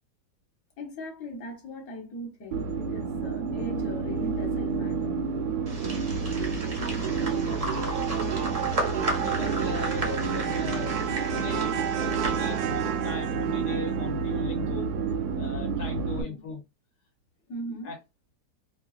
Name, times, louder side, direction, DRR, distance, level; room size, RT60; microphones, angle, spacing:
voice 1, 0.8-5.3 16.0-16.4 17.5-17.9, left 1 dB, 55° left, 1.4 m, -39 dB
sound 1, 2.5-16.2, right 6 dB, 75° right, 1.1 m, -29 dB
sound 2, 5.7-13.0, right 2 dB, 40° right, 0.5 m, -35 dB
voice 2, 6.9-7.9 8.8-11.0 11.3-14.9 15.4-16.6 17.8-18.0, left 4 dB, 75° left, 1.2 m, -39 dB
3.0 x 2.3 x 2.3 m
omnidirectional pair, 1.8 m